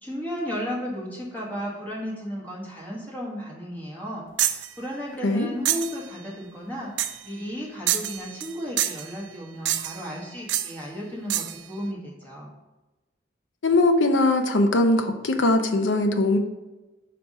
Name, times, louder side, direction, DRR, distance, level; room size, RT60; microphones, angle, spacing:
voice 1, 0.0-6.9 7.2-12.5, equal, 10° left, -5 dB, 1.4 m, -34 dB
sound 1, 4.4-4.7 5.7-6.0 7.0-7.3 7.9-8.5 8.8-9.1 9.7-10.1 10.5-10.7 11.3-11.6, right 12 dB, 75° right, 0.4 m, -26 dB
voice 2, 13.6-16.4, left 2 dB, 85° left, 7 dB, 0.6 m, -21 dB
5.1 x 4.6 x 4.1 m, 1.1 s
head